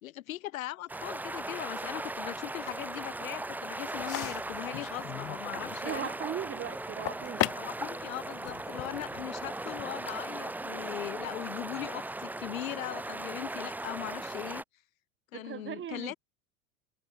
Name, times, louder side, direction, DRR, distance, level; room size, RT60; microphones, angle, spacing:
voice 1, 0.0-6.1 7.5-14.6 15.3-16.1, left 15 dB, 65° left, 2.3 m, -40 dB
sound 1, 0.9-14.6, right 2 dB, 5° right, 0.8 m, -38 dB
sound 2, 3.9-9.8, left 17 dB, 30° left, 0.8 m, -39 dB
voice 2, 5.8-7.5 15.3-16.1, right 10 dB, 25° right, 2.0 m, -38 dB
figure-of-eight pair, 85°, 43 cm